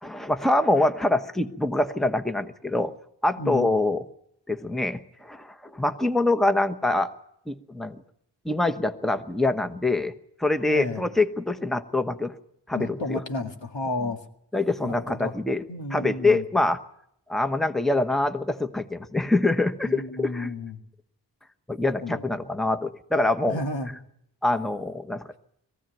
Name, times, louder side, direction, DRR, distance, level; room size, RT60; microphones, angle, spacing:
voice 1, 0.0-2.9 3.2-4.0 4.5-7.1 7.5-8.0 8.4-10.1 10.4-12.4 12.7-13.2 14.5-15.6 15.9-16.8 17.3-20.5 21.7-23.6 24.4-25.2, left 2 dB, ahead, 9 dB, 1.1 m, -25 dB
voice 2, 3.4-3.8 10.7-11.0 12.7-14.2 14.8-15.3 15.7-16.4 19.8-20.8 21.8-22.2 23.4-23.9, left 2 dB, 85° left, 3 dB, 2.1 m, -32 dB
22.5 x 15.5 x 9.2 m, 0.73 s
wide cardioid pair, 55°, 43 cm